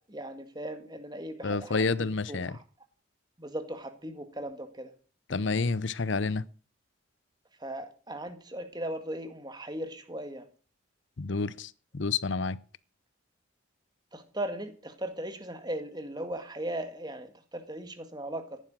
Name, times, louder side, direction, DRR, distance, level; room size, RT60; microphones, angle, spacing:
voice 1, 0.1-2.6 3.4-4.9 7.6-10.5 14.1-18.6, right 1 dB, 20° right, 1.9 m, -38 dB
voice 2, 1.4-2.6 5.3-6.4 11.2-12.6, left 4 dB, 65° left, 0.7 m, -29 dB
14.5 x 11.0 x 6.2 m
head